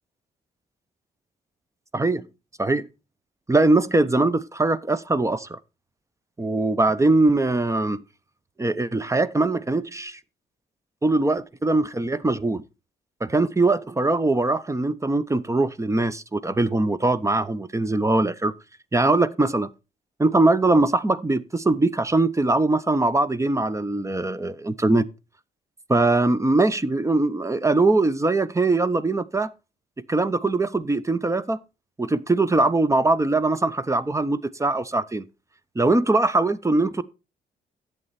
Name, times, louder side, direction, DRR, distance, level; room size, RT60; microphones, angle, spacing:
voice 1, 1.9-2.3 2.6-2.9 3.5-5.6 6.4-8.0 8.6-10.2 11.0-12.6 13.2-18.5 18.9-19.7 20.2-25.1 25.9-29.5 30.1-31.6 32.0-35.2 35.7-37.0, right 2 dB, 15° right, 0.8 m, -21 dB
11.0 x 8.0 x 4.2 m
supercardioid pair, 70°, 18 cm